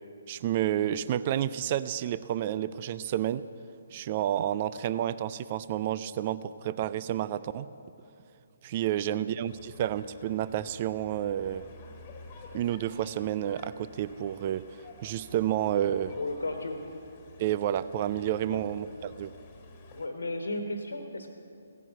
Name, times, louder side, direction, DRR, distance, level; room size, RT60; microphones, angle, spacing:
voice 1, 0.3-3.5 3.9-7.7 8.6-11.7 12.5-14.6 15.0-16.2 17.4-19.3, right 11 dB, 30° right, 15 dB, 0.4 m, -30 dB
sound 1, 9.4-20.1, left 3 dB, 25° left, 1.7 m, -51 dB
voice 2, 16.2-16.8 18.5-18.6 19.9-21.3, left 2 dB, 65° left, 5 dB, 1.4 m, -34 dB
17.0 x 11.0 x 7.6 m, 2.5 s
figure-of-eight pair, 135°, 0 cm